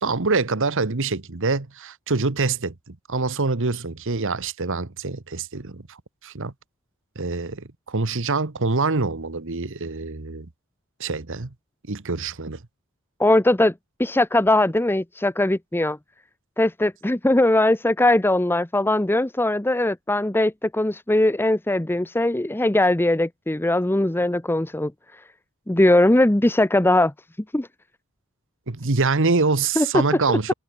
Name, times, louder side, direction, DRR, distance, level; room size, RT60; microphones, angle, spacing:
voice 1, 0.0-6.0 6.2-6.5 7.1-10.5 11.0-11.5 11.9-12.6 28.7-30.5, right 3 dB, 60° right, 1.3 m, -25 dB
voice 2, 13.2-13.7 14.0-16.0 16.6-24.9 25.7-27.1 27.5-27.7 29.8-30.0 30.3-30.4, left 1 dB, 10° left, 0.7 m, -20 dB
head